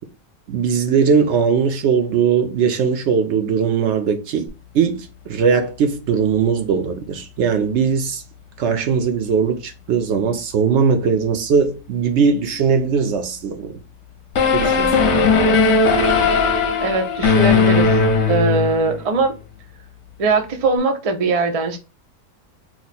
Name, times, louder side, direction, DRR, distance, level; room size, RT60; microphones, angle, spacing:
voice 1, 0.5-4.5 4.7-8.2 8.6-13.8 14.5-15.1, right 6 dB, 65° right, 0.8 m, -19 dB
sound 1, 14.3-19.0, left 4 dB, 60° left, 0.9 m, -17 dB
voice 2, 16.8-17.9 18.3-19.4 20.2-21.8, right 3 dB, 50° right, 0.4 m, -20 dB
3.0 x 2.1 x 4.0 m
omnidirectional pair, 1.4 m